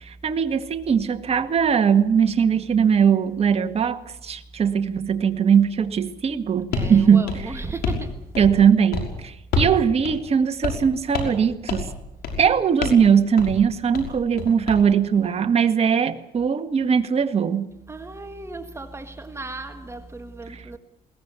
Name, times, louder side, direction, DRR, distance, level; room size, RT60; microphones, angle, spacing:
voice 1, 0.0-7.3 8.4-11.9 12.4-17.7 20.5-20.6, right 7 dB, 35° right, 1.9 m, -20 dB
sound 1, 6.7-6.9 7.3-8.1 8.3-8.7 8.9-9.1 9.5-9.8 10.0-10.2 10.6-10.9 11.1-11.4 11.7-11.9 12.2-12.5 12.8-13.1 13.4-13.6 13.9-14.8, left 3 dB, 70° left, 5.8 m, -27 dB
voice 2, 6.7-8.5 12.4-12.5 17.9-20.8, right 2 dB, 15° right, 1.8 m, -36 dB
21.5 x 19.0 x 8.3 m
cardioid pair, 110°, 17 cm